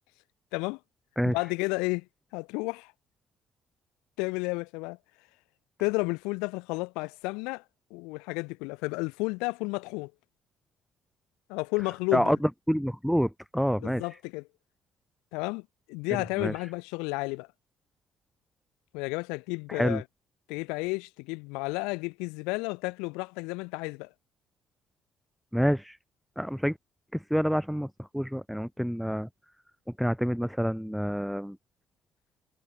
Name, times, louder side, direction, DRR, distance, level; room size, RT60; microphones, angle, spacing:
voice 1, 1.2-2.1 2.3-2.9 4.2-5.0 5.8-7.6 7.9-10.1 11.5-12.3 13.8-14.4 15.3-17.5 18.9-20.0 20.5-24.1, left 28 dB, 80° left, 1.2 m, -32 dB
voice 2, 12.1-14.0 16.4-16.5 19.7-20.0 25.5-26.0 26.4-26.8 27.1-29.3 30.0-31.6, equal, ahead, 1.0 m, -27 dB
hypercardioid pair, 50°, 0 cm